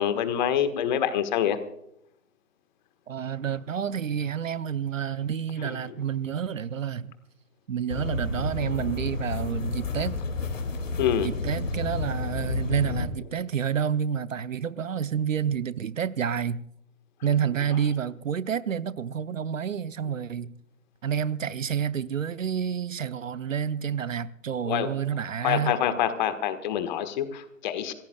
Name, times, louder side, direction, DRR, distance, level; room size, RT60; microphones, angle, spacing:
voice 1, 0.0-1.6 5.6-5.9 11.0-11.3 24.6-24.9 25.4-27.9, left 10 dB, 35° left, 1.5 m, -26 dB
voice 2, 3.1-7.1 7.7-10.2 11.2-16.6 17.2-20.5 21.0-25.8, right 8 dB, 70° right, 0.9 m, -29 dB
sound 1, 7.9-13.0, left 3 dB, 70° left, 2.5 m, -30 dB
27.0 x 16.5 x 2.3 m
figure-of-eight pair, 130°, 40 cm